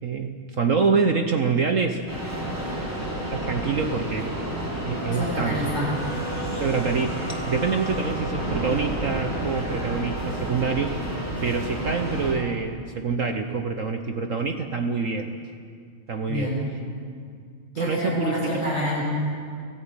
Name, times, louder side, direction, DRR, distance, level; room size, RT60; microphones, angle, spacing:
voice 1, 0.0-2.0 3.3-4.3 4.8-5.7 6.5-11.0 11.4-15.3 16.1-16.6 17.8-18.6, right 5 dB, 55° right, 5 dB, 0.9 m, -26 dB
sound 1, 2.1-12.3, right 1 dB, 10° right, 4.7 m, -30 dB
voice 2, 5.1-5.9 16.3-16.7 17.7-19.0, equal, 80° left, -5 dB, 7.9 m, -28 dB
18.5 x 17.0 x 8.9 m, 2.2 s
omnidirectional pair, 2.4 m